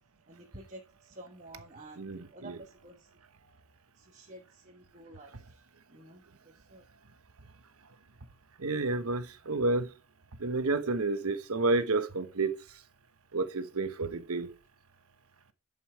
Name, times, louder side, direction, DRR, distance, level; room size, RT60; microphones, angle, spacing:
voice 1, 0.3-0.8 1.2-2.0 2.3-2.5 2.8-3.0 4.1-5.3 5.9-6.2 6.7-6.8, right 1 dB, 35° right, 1.4 m, -49 dB
voice 2, 2.0-2.6 8.6-9.9 10.4-12.5 13.3-14.5, right 3 dB, 85° right, 1.1 m, -30 dB
11.5 x 5.5 x 4.6 m
head